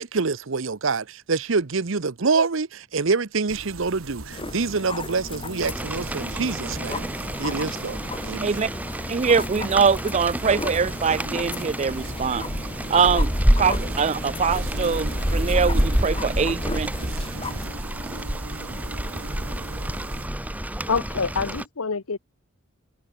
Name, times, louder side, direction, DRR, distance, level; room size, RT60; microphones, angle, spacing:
voice 1, 0.0-7.0 7.4-8.6, right 4 dB, 65° right, 0.8 m, -26 dB
sound 1, 3.5-20.3, right 2 dB, 80° right, 4.0 m, -39 dB
sound 2, 4.3-17.7, left 3 dB, 25° left, 0.9 m, -37 dB
Rain, 5.6-21.6, equal, 5° right, 1.6 m, -28 dB
voice 2, 9.1-12.5 12.9-13.3 13.6-16.9, right 5 dB, 30° right, 0.4 m, -23 dB
voice 3, 20.9-22.2, left 5 dB, 80° left, 1.0 m, -26 dB
head